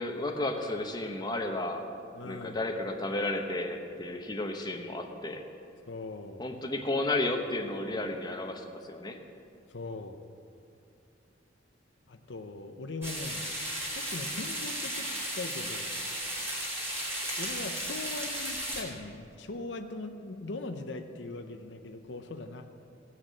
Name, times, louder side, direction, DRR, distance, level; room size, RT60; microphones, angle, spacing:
voice 1, 0.0-1.8 2.2-5.4 6.4-9.2, left 2 dB, 20° left, 3 dB, 1.0 m, -33 dB
voice 2, 2.1-2.6 5.9-6.5 9.7-10.2 12.1-13.5 13.9-16.0 17.4-22.6, left 2 dB, 70° left, 6 dB, 0.7 m, -40 dB
sound 1, 13.0-18.8, right 1 dB, 15° right, 3.0 m, -35 dB
17.0 x 6.5 x 7.5 m, 2.5 s
head